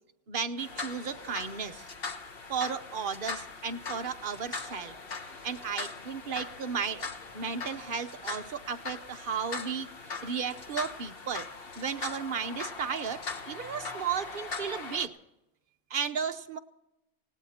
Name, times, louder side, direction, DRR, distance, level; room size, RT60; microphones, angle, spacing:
voice 1, 0.3-1.9 2.5-5.0 5.4-7.1 7.3-9.9 10.2-11.5 11.8-15.2 15.9-16.6, right 6 dB, 45° right, 7 dB, 0.9 m, -34 dB
sound 1, 0.6-15.1, left 4 dB, 40° left, 1.3 m, -40 dB
18.5 x 18.0 x 4.3 m, 0.90 s
omnidirectional pair, 1.5 m